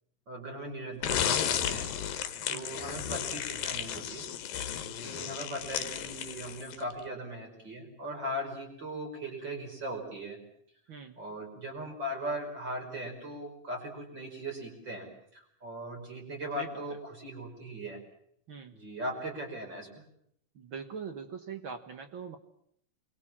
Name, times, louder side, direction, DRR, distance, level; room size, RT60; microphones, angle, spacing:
voice 1, 0.3-1.9 2.5-4.3 4.9-10.4 11.2-15.1 15.3-18.0 18.7-19.9, right 1 dB, 30° right, 2 dB, 5.7 m, -39 dB
sound 1, 1.0-6.9, left 9 dB, 75° left, 3.1 m, -33 dB
voice 2, 20.5-22.4, right 6 dB, 60° right, 9 dB, 1.4 m, -42 dB
27.0 x 23.0 x 7.4 m, 0.71 s
omnidirectional pair, 4.0 m